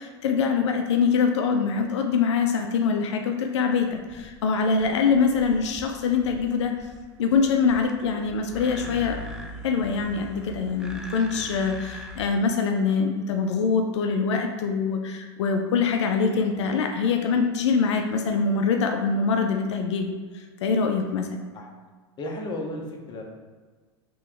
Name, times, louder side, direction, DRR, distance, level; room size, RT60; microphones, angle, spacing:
voice 1, 0.0-6.7 7.2-9.2 9.6-21.4, left 5 dB, 90° left, 4 dB, 0.4 m, -24 dB
sound 1, 3.9-12.2, left 1 dB, 5° right, 0.3 m, -42 dB
voice 2, 22.2-23.2, left 1 dB, 30° left, 0 dB, 0.8 m, -34 dB
3.3 x 3.0 x 3.4 m, 1.4 s
hypercardioid pair, 110°, 14 cm